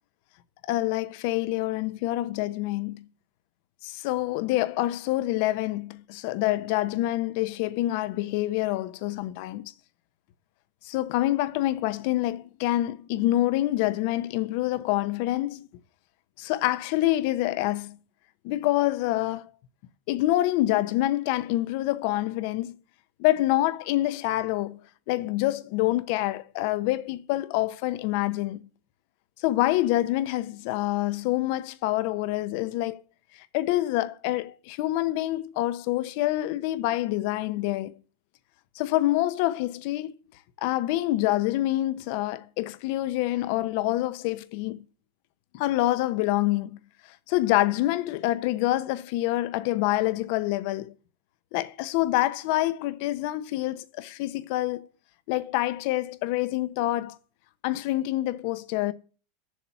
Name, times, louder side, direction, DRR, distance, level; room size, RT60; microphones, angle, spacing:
voice 1, 0.7-3.1 3.8-9.7 10.8-15.7 16.4-18.0 18.4-19.5 20.1-22.7 23.2-24.8 25.1-28.6 29.4-33.0 33.5-37.9 38.7-40.1 40.6-44.8 45.5-46.8 47.3-50.9 51.5-54.9 55.3-57.2 57.6-58.9, left 16 dB, 45° left, 0.9 m, -26 dB
7.4 x 7.3 x 8.4 m
supercardioid pair, 175°, 0 cm